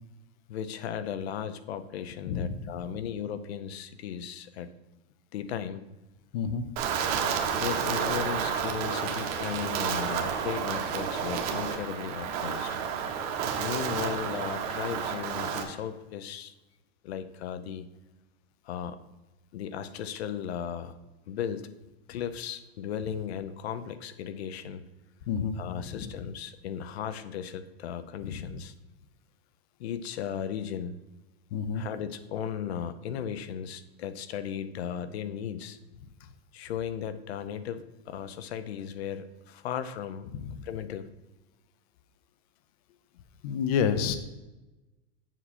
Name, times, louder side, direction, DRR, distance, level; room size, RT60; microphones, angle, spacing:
voice 1, 0.5-4.7 5.3-5.8 7.5-12.8 13.6-16.5 17.0-17.8 18.6-19.0 19.5-20.9 21.3-21.7 22.1-24.8 25.6-28.7 29.8-31.0 31.7-35.8 36.5-40.3 40.6-41.1, left 8 dB, 75° left, 12 dB, 0.8 m, -36 dB
voice 2, 6.3-6.6 25.3-26.1 28.2-28.5 31.5-31.9 40.4-40.7 43.4-44.2, left 7 dB, 40° left, 10 dB, 0.5 m, -29 dB
Wind, 6.8-15.6, right 7 dB, 35° right, 0.9 m, -30 dB
7.3 x 6.8 x 4.2 m, 1.1 s
supercardioid pair, 170°, 32 cm